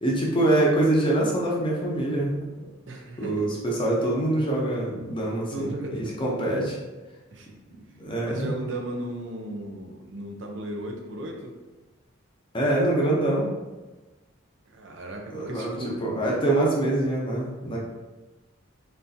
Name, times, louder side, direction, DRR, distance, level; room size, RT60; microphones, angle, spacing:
voice 1, 0.0-2.5 3.2-6.8 7.7-8.5 12.5-13.5 15.3-17.8, right 1 dB, 25° left, -4 dB, 0.8 m, -25 dB
voice 2, 2.9-3.5 4.7-4.9 5.5-6.2 7.3-7.5 8.2-11.6 14.7-16.0, right 1 dB, 65° right, 1 dB, 0.6 m, -35 dB
4.0 x 3.5 x 2.7 m, 1.2 s
head